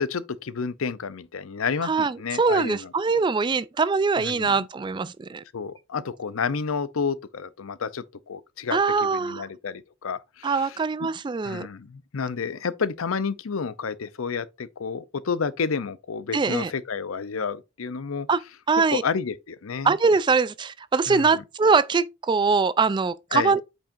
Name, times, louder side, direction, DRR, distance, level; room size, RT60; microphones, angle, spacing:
voice 1, 0.0-2.9 4.2-4.7 5.5-11.1 11.4-18.3 18.9-19.9 21.1-21.4 23.3-23.5, left 5 dB, 75° left, 0.6 m, -30 dB
voice 2, 1.8-5.4 8.7-9.5 10.4-11.7 16.3-16.7 18.3-18.4 18.7-19.0 19.8-23.6, right 4 dB, 20° right, 0.3 m, -23 dB
8.7 x 5.5 x 2.5 m
head